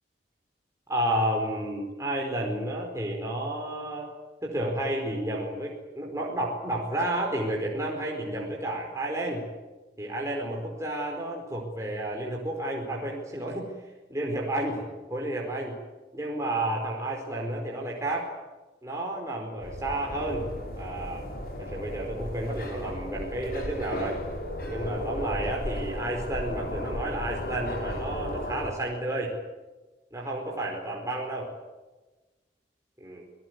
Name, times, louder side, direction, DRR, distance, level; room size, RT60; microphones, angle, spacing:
voice 1, 0.9-4.1 4.4-9.4 10.0-13.7 14.1-14.8 15.1-15.7 16.1-18.3 18.8-20.5 20.8-21.3 21.6-24.2 24.7-29.4 30.1-31.5 33.0-33.3, right 1 dB, 15° right, -1 dB, 4.8 m, -31 dB
sound 1, 19.6-28.7, left 1 dB, 55° left, 5.8 m, -35 dB
28.5 x 18.5 x 9.5 m, 1.2 s
head